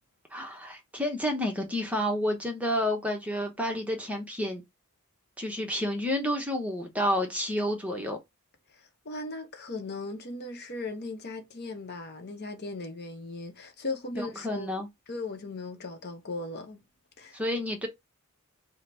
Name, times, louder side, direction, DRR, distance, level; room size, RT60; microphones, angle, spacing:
voice 1, 0.3-4.6 5.4-8.2 14.1-14.9 17.3-17.9, equal, 5° right, 0.7 m, -30 dB
voice 2, 8.7-14.7 15.1-16.8 17.2-17.4, left 2 dB, 45° left, 0.8 m, -38 dB
3.8 x 2.0 x 4.2 m
head